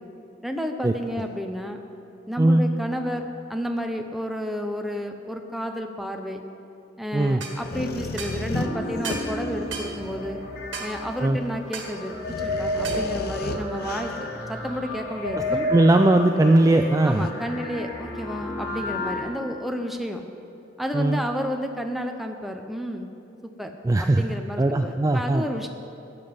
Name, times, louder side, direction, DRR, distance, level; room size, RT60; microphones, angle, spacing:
voice 1, 0.4-1.8 2.3-6.4 7.0-10.4 10.8-15.7 17.0-20.2 20.8-23.1 23.4-23.7 24.0-25.7, equal, ahead, 4 dB, 0.7 m, -31 dB
sound 1, 7.4-7.6 8.2-8.4 9.0-9.3 9.7-9.9 10.7-10.9 11.7-11.9 12.8-13.1, right 5 dB, 80° right, 1.7 m, -34 dB
sound 2, 7.6-10.1 10.8-10.9 11.5-11.6 12.0-14.5 17.2-17.3, left 2 dB, 55° left, 0.7 m, -34 dB
sound 3, 8.5-19.2, left 1 dB, 85° left, 3.0 m, -31 dB
voice 2, 15.7-17.2 20.9-21.2 23.8-24.2 24.6-25.4, right 2 dB, 20° right, 6 dB, 0.3 m, -19 dB
13.5 x 9.5 x 5.2 m, 2.7 s
head